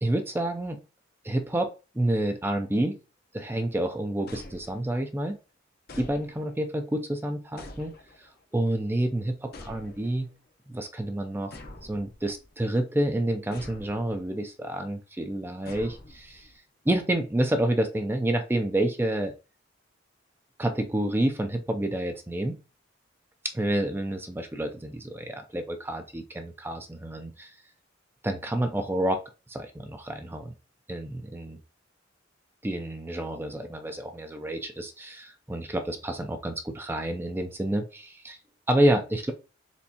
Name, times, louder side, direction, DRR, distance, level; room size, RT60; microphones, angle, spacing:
voice 1, 0.0-0.8 1.2-3.0 3.3-5.4 6.0-7.9 8.5-10.3 10.7-11.5 11.9-16.5 16.9-19.3 20.6-22.6 23.5-27.5 28.2-29.2 29.5-30.5 30.9-31.6 32.6-38.4 38.7-39.3, right 1 dB, 10° right, 5 dB, 0.4 m, -28 dB
sound 1, 4.3-5.2 5.9-6.7 7.6-8.4 9.5-10.3 11.5-12.5 13.5-14.3 15.7-16.6, left 2 dB, 50° left, 0.8 m, -46 dB
4.4 x 3.2 x 2.8 m, 0.31 s
head